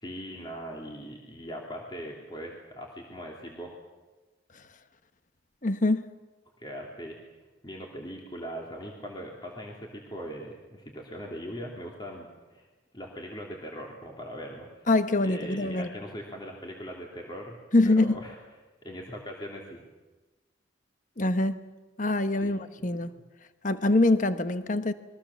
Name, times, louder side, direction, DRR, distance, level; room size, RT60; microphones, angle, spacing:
voice 1, 0.0-3.7 6.6-7.2 7.6-12.7 12.9-14.9 15.2-17.6 17.8-18.4 18.8-19.9 22.4-22.6, equal, 25° left, 2.9 m, -40 dB
voice 2, 5.6-6.1 14.9-15.9 17.7-18.1 21.2-21.6 22.0-23.1 23.6-24.9, left 2 dB, 40° left, 1.1 m, -24 dB
27.5 x 22.5 x 7.2 m
head